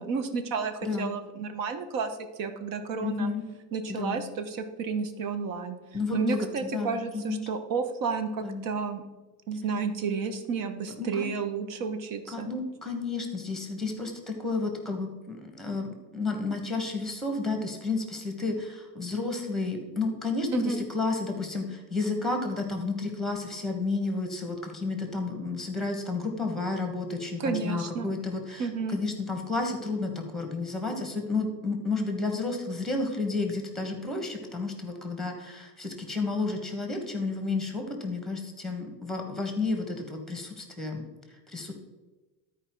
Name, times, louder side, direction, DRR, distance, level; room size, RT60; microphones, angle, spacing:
voice 1, 0.0-3.3 3.7-5.8 6.1-9.0 9.5-12.5 20.5-20.8 27.4-28.1 28.6-29.0, right 5 dB, 55° right, 9 dB, 1.0 m, -31 dB
voice 2, 0.8-1.2 3.0-3.4 3.9-4.2 5.9-6.5 6.7-7.4 8.4-8.6 11.0-11.2 12.3-15.9 16.1-41.1 41.5-41.7, left 3 dB, ahead, 4 dB, 1.3 m, -31 dB
12.0 x 4.8 x 4.6 m, 1.2 s
cardioid pair, 150°, 41 cm